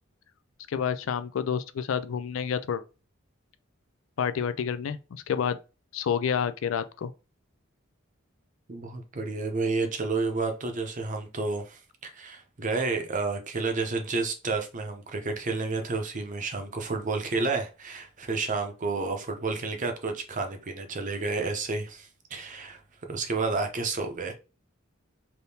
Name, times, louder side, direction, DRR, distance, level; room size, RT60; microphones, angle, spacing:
voice 1, 0.7-2.8 4.2-5.6 5.9-7.1, left 7 dB, 70° left, 0.4 m, -29 dB
voice 2, 8.7-22.8 23.1-24.3, right 3 dB, 40° right, 0.7 m, -30 dB
3.5 x 2.8 x 2.7 m
head